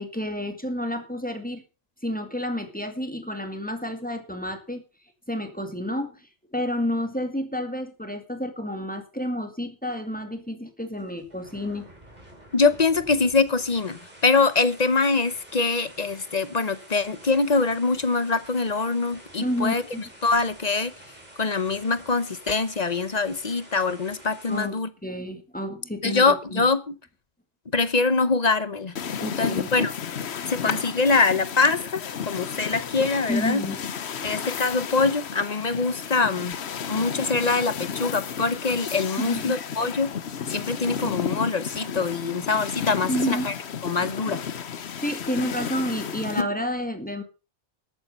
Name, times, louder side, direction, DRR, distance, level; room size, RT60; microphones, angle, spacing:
voice 1, 0.0-1.6 2.0-4.8 5.3-6.2 6.5-11.9 19.4-20.0 24.5-24.8 25.0-26.6 29.2-29.7 33.3-33.8 39.2-39.6 43.1-43.5 44.8-47.2, equal, 5° left, 6 dB, 2.2 m, -30 dB
sound 1, 10.8-24.7, right 1 dB, 40° right, 4.4 m, -49 dB
voice 2, 12.5-19.8 20.2-20.9 21.4-24.9 26.0-26.8 27.7-28.9 29.4-29.9 30.5-33.6 34.2-36.6 36.9-40.1 40.5-43.5 43.8-44.4 46.4-46.5, left 4 dB, 40° left, 14 dB, 1.0 m, -24 dB
sound 2, 29.0-46.4, left 7 dB, 70° left, 1.2 m, -33 dB
13.5 x 8.8 x 5.4 m, 0.32 s
omnidirectional pair, 1.1 m